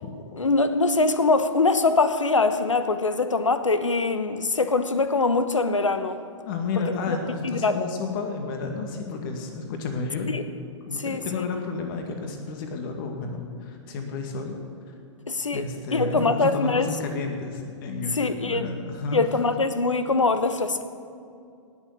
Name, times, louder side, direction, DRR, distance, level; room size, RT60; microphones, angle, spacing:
voice 1, 0.4-6.2 7.1-7.2 7.4-7.8 10.3-10.4 10.9-11.4 15.3-16.9 18.1-18.7 19.1-20.8, left 3 dB, 80° left, 10 dB, 1.1 m, -23 dB
voice 2, 6.5-10.3 10.9-14.6 14.9-15.0 15.5-19.2, left 4 dB, 45° left, 4 dB, 2.1 m, -31 dB
18.0 x 7.1 x 8.2 m, 2.4 s
figure-of-eight pair, 110°, 16 cm